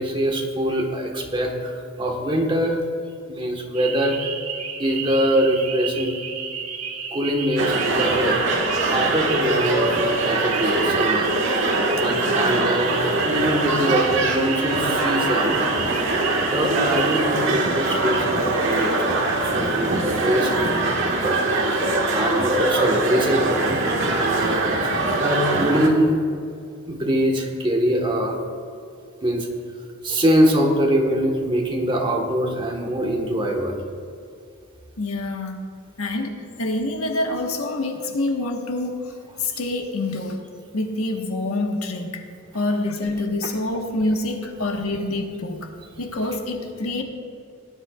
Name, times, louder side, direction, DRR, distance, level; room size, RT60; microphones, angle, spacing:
voice 1, 0.0-2.8 3.3-4.2 4.8-6.1 7.1-8.4 8.9-10.0 10.2-11.3 11.9-13.0 13.3-15.6 16.4-20.5 21.1-21.5 22.1-23.8 24.1-26.2 26.9-28.4 29.2-29.5 30.0-33.8, equal, 25° right, 1 dB, 1.4 m, -23 dB
sound 1, 3.7-17.2, right 6 dB, 85° right, 1.5 m, -32 dB
sound 2, 7.6-25.9, right 2 dB, 60° right, 1.6 m, -22 dB
voice 2, 35.0-39.1 39.4-40.4 40.7-42.3 42.5-45.7 46.0-47.0, left 2 dB, 90° left, 3 dB, 1.4 m, -26 dB
17.5 x 11.0 x 2.4 m, 2.4 s
head